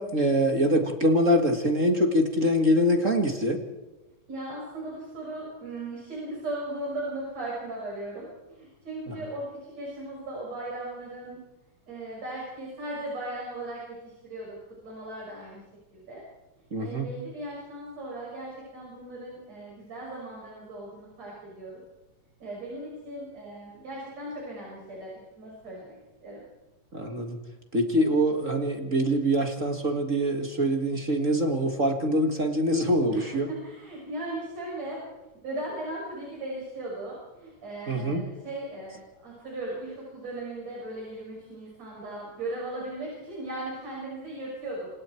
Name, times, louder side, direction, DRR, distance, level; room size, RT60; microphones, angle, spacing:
voice 1, 0.0-3.6 16.7-17.1 26.9-27.4 27.7-33.5 37.9-38.2, equal, 30° right, 4 dB, 1.9 m, -24 dB
voice 2, 4.3-11.4 11.9-14.6 14.8-15.6 15.9-16.2 16.8-21.8 22.4-26.5 33.1-35.0 35.4-44.9, right 1 dB, 60° right, -4 dB, 7.3 m, -37 dB
28.5 x 26.0 x 4.6 m, 1.1 s
omnidirectional pair, 3.4 m